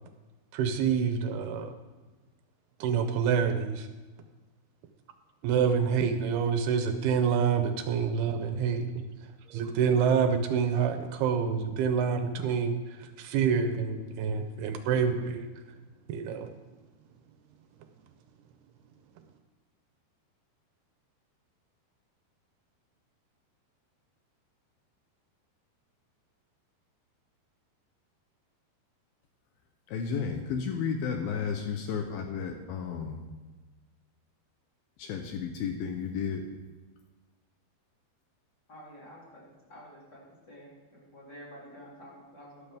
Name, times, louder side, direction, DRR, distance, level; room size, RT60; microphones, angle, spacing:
voice 1, 0.5-1.7 2.8-3.9 5.4-9.1 9.5-15.5 16.1-16.5, right 6 dB, 80° right, 8 dB, 2.6 m, -27 dB
voice 2, 29.9-33.2 35.0-36.4, left 6 dB, 75° left, 4 dB, 2.4 m, -32 dB
voice 3, 38.7-39.4 39.7-40.0 40.5-42.8, equal, 25° left, -5 dB, 3.3 m, -49 dB
13.0 x 12.0 x 3.5 m, 1.3 s
omnidirectional pair, 4.7 m